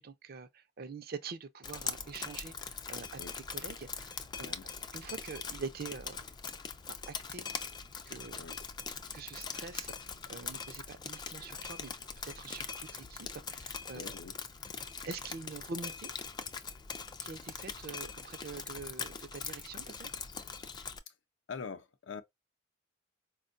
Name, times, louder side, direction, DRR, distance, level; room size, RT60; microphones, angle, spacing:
voice 1, 0.0-4.6 4.9-6.2 7.1-7.5 8.1-8.4 9.1-14.1 15.0-16.1 17.2-20.1, right 4 dB, 55° right, 0.5 m, -45 dB
Drip, 1.6-21.0, left 5 dB, 20° left, 0.3 m, -42 dB
voice 2, 13.9-14.4 21.1-21.2 21.5-22.2, left 5 dB, 80° left, 0.6 m, -44 dB
4.4 x 2.2 x 2.5 m
head